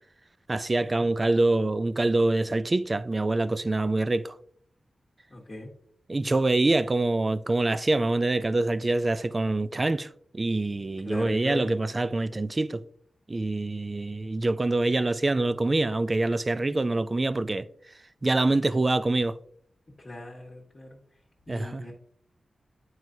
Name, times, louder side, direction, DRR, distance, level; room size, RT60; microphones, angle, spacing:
voice 1, 0.5-4.4 6.1-12.8 13.3-17.7 18.2-19.4 21.5-21.9, right 2 dB, 25° right, 0.3 m, -25 dB
voice 2, 5.3-5.7 11.0-11.7 20.0-21.0 21.5-21.9, left 1 dB, 30° left, 1.3 m, -38 dB
9.3 x 4.6 x 2.7 m
wide cardioid pair, 120°, 0 cm